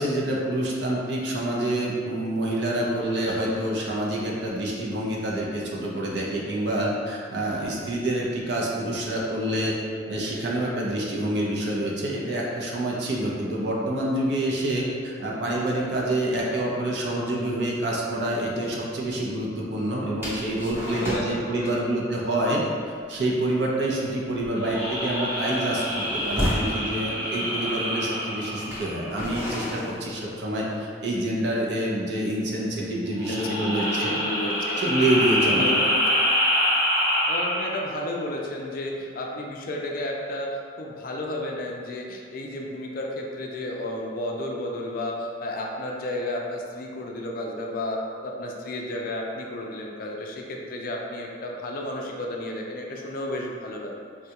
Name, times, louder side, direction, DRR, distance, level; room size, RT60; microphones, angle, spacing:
voice 1, 0.0-9.8 10.1-34.1 34.8-35.7, right 1 dB, 60° right, -4 dB, 0.6 m, -27 dB
sound 1, 20.2-21.4 21.6-21.9 22.2-22.5 22.9-23.1 23.4-23.7 24.1-26.8 27.6-27.7 28.5-30.9, equal, 10° right, 0.7 m, -32 dB
voice 2, 20.8-21.9 33.3-34.8 35.4-36.2 37.3-54.3, left 1 dB, 50° left, 0 dB, 0.3 m, -32 dB
sound 2, 24.6-29.4 33.2-37.9, equal, 10° left, 0.9 m, -26 dB
3.5 x 2.3 x 2.8 m, 2.2 s
head